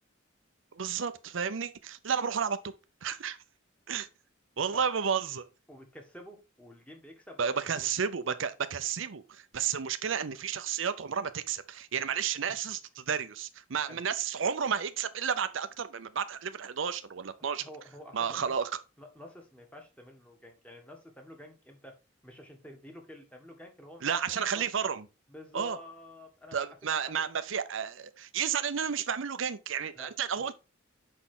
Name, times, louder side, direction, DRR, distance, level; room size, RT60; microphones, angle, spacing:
voice 1, 0.7-2.6 3.0-3.4 3.9-4.1 4.6-5.4 7.4-17.7 18.1-18.8 24.0-25.0 25.5-25.8 26.5-30.5, right 7 dB, 70° right, 0.6 m, -32 dB
voice 2, 5.7-7.9 13.8-14.0 17.4-18.6 19.0-22.0 22.2-24.7 25.3-27.3 29.9-30.1 30.4-30.5, left 1 dB, 5° left, 1.6 m, -50 dB
6.2 x 5.6 x 3.7 m
head